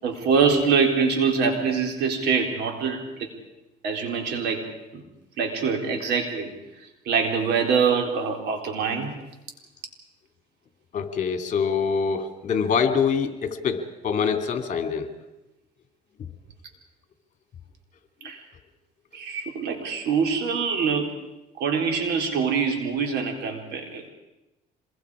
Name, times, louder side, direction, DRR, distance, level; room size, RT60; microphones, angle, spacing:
voice 1, 0.0-3.3 3.8-5.0 5.4-6.5 7.1-9.1 18.2-18.4 19.1-21.1 21.6-24.1, right 5 dB, 80° right, 3 dB, 4.1 m, -24 dB
voice 2, 10.9-15.1, left 6 dB, 45° left, 7 dB, 2.7 m, -25 dB
26.5 x 22.0 x 5.0 m, 0.96 s
cardioid pair, 110°, 17 cm